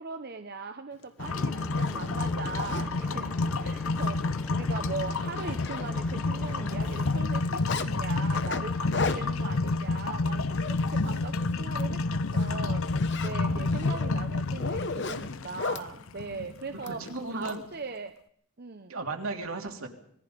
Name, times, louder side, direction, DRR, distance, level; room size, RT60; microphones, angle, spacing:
voice 1, 0.0-3.3 3.6-17.0 17.3-18.1 18.6-18.9, right 4 dB, 45° right, 7 dB, 0.9 m, -39 dB
Zipper (clothing), 1.0-1.1 1.6-2.9 3.5-3.6 4.0-4.1 4.4-4.6 4.9-6.2 6.5-7.9 8.3-11.3 11.6-11.9 12.2-15.9 16.8-17.6, left 4 dB, 55° left, 1.2 m, -37 dB
sound 1, 1.2-17.1, left 3 dB, 70° left, 0.7 m, -29 dB
sound 2, 1.2-7.2, left 1 dB, 5° left, 0.8 m, -46 dB
voice 2, 8.9-9.4 13.4-13.8 16.8-17.6 18.9-19.9, right 3 dB, 75° right, 3 dB, 3.0 m, -36 dB
25.5 x 19.5 x 5.2 m, 0.67 s
head